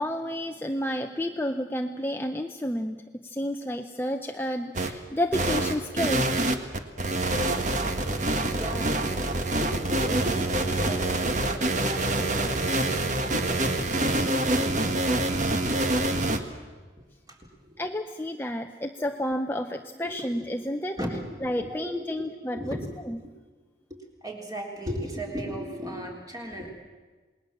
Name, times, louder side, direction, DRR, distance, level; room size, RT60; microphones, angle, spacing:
voice 1, 0.0-6.4 7.7-8.1 17.8-21.0 21.4-22.8 23.1-23.2, left 1 dB, 10° left, 5 dB, 0.7 m, -31 dB
sound 1, 4.7-4.9 5.3-16.4, right 2 dB, 40° right, 1.6 m, -26 dB
voice 2, 8.5-10.5 10.8-16.8 17.3-17.8 20.0-20.5 21.0-22.2 22.5-23.0 23.9-26.7, equal, 20° right, 0 dB, 3.6 m, -38 dB
28.0 x 20.0 x 7.4 m, 1.4 s
head